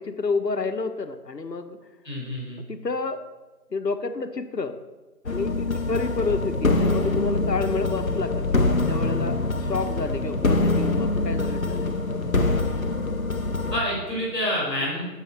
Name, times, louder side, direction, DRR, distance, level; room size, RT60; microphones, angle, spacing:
voice 1, 0.0-1.8 2.7-3.2 3.7-4.8 5.2-12.0, left 4 dB, 80° left, 8 dB, 1.2 m, -29 dB
voice 2, 2.0-2.6 13.7-15.0, equal, ahead, -35 dB, 3.4 m, -27 dB
sound 1, 5.3-13.8, left 2 dB, 55° left, 0.9 m, -24 dB
11.5 x 7.2 x 4.5 m, 1.2 s
figure-of-eight pair, 180°, 48 cm